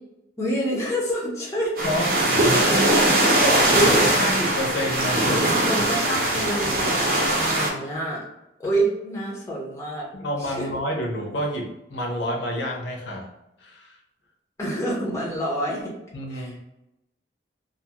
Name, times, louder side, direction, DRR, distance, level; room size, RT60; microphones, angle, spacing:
voice 1, 0.4-1.8 3.7-4.1 5.3-8.2 8.6-10.1 10.4-10.7 14.6-15.9 16.3-16.6, right 1 dB, 15° left, -3 dB, 0.5 m, -27 dB
voice 2, 1.8-2.9 3.4-3.7 4.1-5.4 5.8-6.5 10.1-13.3 13.6-14.0 16.1-16.6, equal, 80° left, 1 dB, 0.6 m, -29 dB
sound 1, 1.8-7.7, right 1 dB, 50° right, 0.7 m, -20 dB
2.5 x 2.4 x 2.8 m, 0.89 s
head